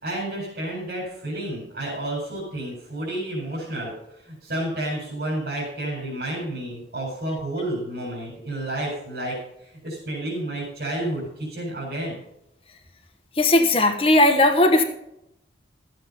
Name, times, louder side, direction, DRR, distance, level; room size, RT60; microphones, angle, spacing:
voice 1, 0.0-12.2, right 1 dB, 60° right, -7 dB, 4.5 m, -30 dB
voice 2, 13.4-14.8, left 1 dB, 30° left, 5 dB, 1.1 m, -17 dB
13.5 x 7.8 x 5.4 m, 0.80 s
head